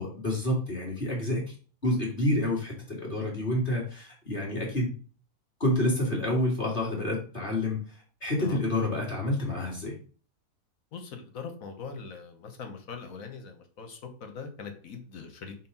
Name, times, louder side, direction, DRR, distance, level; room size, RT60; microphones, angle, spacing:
voice 1, 0.0-1.5 1.8-4.9 5.6-7.8 8.2-10.0, left 1 dB, 35° left, -3 dB, 2.5 m, -28 dB
voice 2, 10.9-15.6, left 5 dB, 70° left, 5 dB, 1.5 m, -42 dB
4.6 x 3.9 x 5.4 m, 0.40 s
omnidirectional pair, 1.5 m